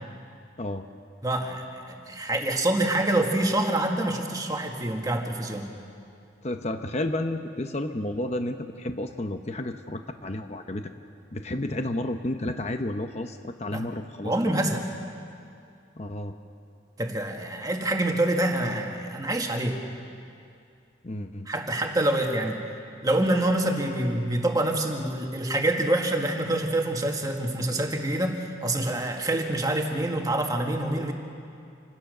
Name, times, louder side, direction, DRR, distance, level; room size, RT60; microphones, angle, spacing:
voice 1, 1.2-5.7 13.7-13.8 14.2-14.9 17.0-19.8 21.5-22.6 23.0-31.1, right 1 dB, 20° right, 2 dB, 1.8 m, -26 dB
voice 2, 6.4-10.9 11.3-14.7 16.0-16.3 21.0-21.5, left 1 dB, 35° left, 7 dB, 0.8 m, -31 dB
26.5 x 17.0 x 6.7 m, 2.5 s
head